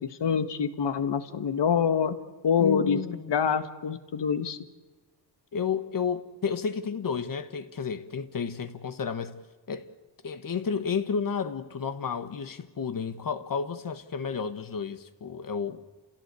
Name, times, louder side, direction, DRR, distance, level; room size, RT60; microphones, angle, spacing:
voice 1, 0.0-2.1 2.4-3.0 3.3-4.6, left 7 dB, 75° left, 1.7 m, -26 dB
voice 2, 2.6-4.0 5.5-9.4 9.7-9.9 10.2-15.8, left 6 dB, 50° left, 1.3 m, -32 dB
30.0 x 16.5 x 8.3 m
wide cardioid pair, 165°, 43 cm